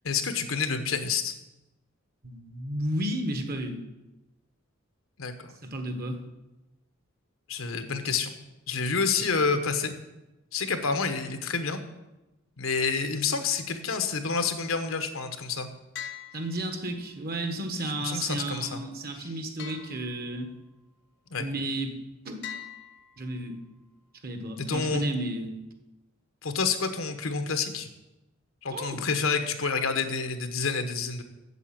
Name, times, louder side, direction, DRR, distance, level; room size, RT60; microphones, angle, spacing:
voice 1, 0.0-1.3 5.2-5.5 7.5-8.3 8.7-9.9 10.5-11.8 12.6-15.7 18.0-18.8 19.2-19.3 21.3-21.4 24.6-25.0 26.4-27.9 28.6-31.2, left 5 dB, 85° left, 8 dB, 1.1 m, -28 dB
voice 2, 2.2-3.8 5.6-6.2 16.3-20.5 21.4-22.0 22.2-22.5 23.2-23.6 24.2-25.5 28.7-29.1, right 1 dB, 50° right, 6 dB, 1.3 m, -33 dB
sound 1, 15.9-17.2 19.6-20.7 22.4-23.7, left 9 dB, 60° left, 1.0 m, -43 dB
8.2 x 7.4 x 7.4 m, 1.0 s
head